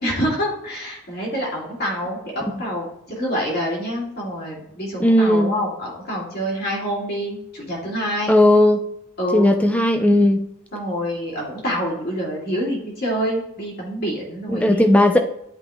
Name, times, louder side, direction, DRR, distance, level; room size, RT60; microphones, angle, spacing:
voice 1, 0.0-8.3 9.2-9.6 10.7-15.0, equal, 45° left, -3 dB, 2.6 m, -26 dB
voice 2, 5.0-5.5 8.3-8.8 9.3-10.4 14.5-15.2, left 1 dB, 5° left, 5 dB, 0.5 m, -16 dB
11.0 x 5.1 x 2.4 m, 0.81 s
head